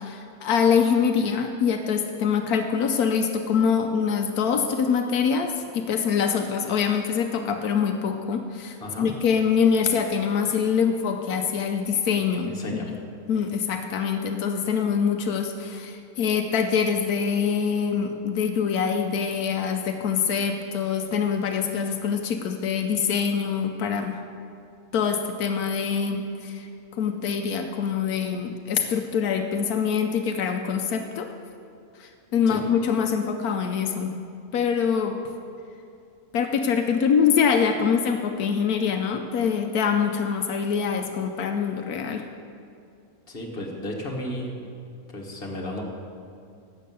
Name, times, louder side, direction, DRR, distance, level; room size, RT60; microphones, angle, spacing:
voice 1, 0.0-13.0 13.3-24.1 24.9-26.7 27.0-31.3 32.0-34.1 34.5-35.2 36.3-42.2, left 6 dB, 85° left, 5 dB, 1.2 m, -24 dB
voice 2, 12.4-12.9 32.5-32.6 43.3-44.5 45.1-45.8, left 1 dB, 40° left, -1 dB, 1.9 m, -33 dB
12.0 x 8.4 x 6.9 m, 2.4 s
omnidirectional pair, 1.5 m